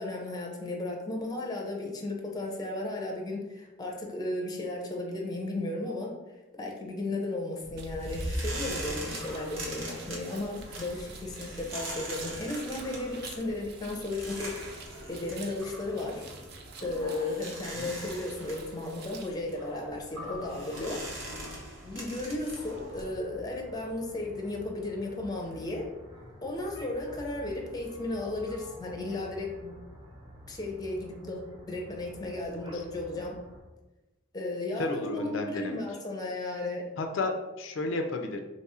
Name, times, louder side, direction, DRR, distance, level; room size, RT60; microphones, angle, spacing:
voice 1, 0.0-6.2 6.6-14.6 15.1-16.3 16.8-21.3 21.8-25.9 26.4-29.7 30.5-33.4 34.3-36.9, left 2 dB, 20° left, 1 dB, 0.5 m, -35 dB
sound 1, 7.6-23.1, right 1 dB, 80° right, 0.9 m, -40 dB
sound 2, 7.8-19.3, right 5 dB, 55° right, 0.5 m, -50 dB
sound 3, 22.5-33.6, equal, 20° right, 0.8 m, -49 dB
voice 2, 34.8-35.8 37.0-38.4, left 2 dB, 70° left, 4 dB, 0.4 m, -33 dB
3.0 x 2.4 x 4.1 m, 1.1 s
head